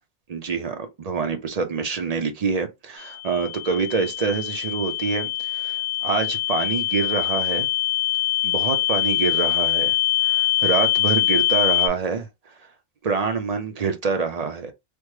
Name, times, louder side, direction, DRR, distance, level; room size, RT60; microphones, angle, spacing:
voice 1, 0.3-7.7 8.4-10.0 10.2-12.3 13.0-14.7, right 5 dB, 45° right, 0.5 m, -26 dB
sound 1, 3.0-11.9, left 15 dB, 80° left, 0.8 m, -23 dB
3.4 x 2.1 x 3.1 m
omnidirectional pair, 1.1 m